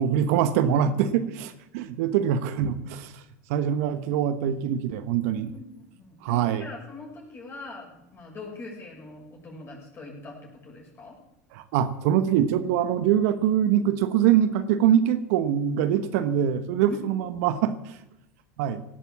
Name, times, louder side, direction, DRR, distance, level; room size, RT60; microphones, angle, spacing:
voice 1, 0.0-3.2 3.5-5.5 6.2-6.7 11.5-18.0 18.6-18.8, right 9 dB, 65° right, 10 dB, 1.2 m, -24 dB
voice 2, 5.5-11.2 16.9-17.0, left 3 dB, 30° left, -2 dB, 6.8 m, -42 dB
17.5 x 9.1 x 7.5 m, 0.89 s
hypercardioid pair, 85°, 8 cm